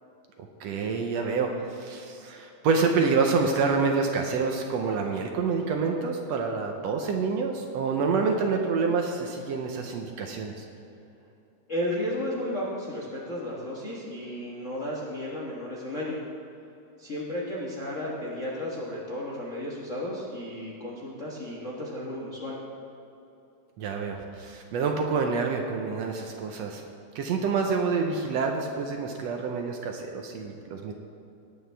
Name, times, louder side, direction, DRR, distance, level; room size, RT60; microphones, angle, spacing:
voice 1, 0.4-10.7 23.8-26.8 27.2-30.9, right 4 dB, 70° right, 3 dB, 1.7 m, -27 dB
voice 2, 11.7-16.2 17.0-22.6, left 1 dB, 45° left, -5 dB, 1.0 m, -33 dB
18.5 x 8.5 x 3.4 m, 2.9 s
omnidirectional pair, 3.4 m